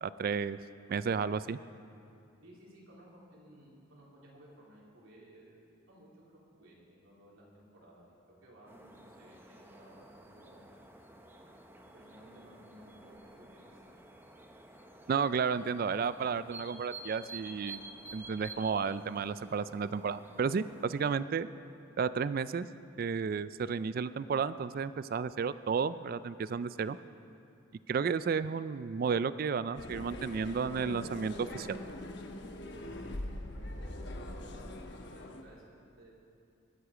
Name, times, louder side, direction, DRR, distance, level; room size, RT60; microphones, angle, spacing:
voice 1, 0.0-0.6 0.9-1.6 15.1-17.8 18.1-21.5 22.0-22.7 23.0-27.0 27.9-31.8, right 5 dB, 45° right, 15 dB, 0.3 m, -32 dB
voice 2, 2.4-8.1 8.4-10.7 11.9-14.1 17.5-17.6 33.5-35.6 36.0-36.1, right 1 dB, 75° right, -5 dB, 3.2 m, -57 dB
sound 1, 8.7-21.0, right 2 dB, 10° right, 0.7 m, -51 dB
sound 2, 29.8-35.4, left 1 dB, 55° left, 1.0 m, -42 dB
22.0 x 8.0 x 4.9 m, 2.6 s
head